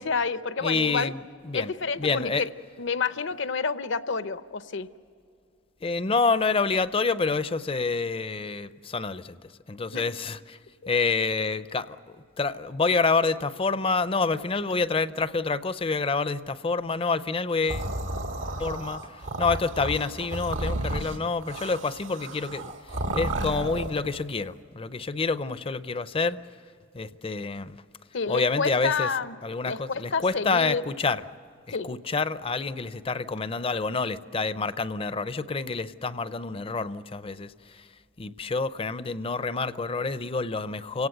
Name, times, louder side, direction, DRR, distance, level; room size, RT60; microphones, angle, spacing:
voice 1, 0.0-1.1 1.5-2.5 2.8-4.9 9.9-10.0 28.1-29.3 29.7-30.8 31.7-31.9, left 5 dB, 70° left, 12 dB, 0.8 m, -29 dB
voice 2, 0.6-1.7 2.0-2.4 5.8-9.4 9.7-10.6 10.9-17.9 18.6-22.7 23.1-26.4 26.9-27.8 28.3-29.1 29.4-31.2 31.7-37.9 38.2-41.1, left 4 dB, 30° left, 14 dB, 0.6 m, -28 dB
sound 1, 17.7-24.0, right 1 dB, 85° right, 1.9 m, -32 dB
29.5 x 17.5 x 7.9 m, 2.5 s
head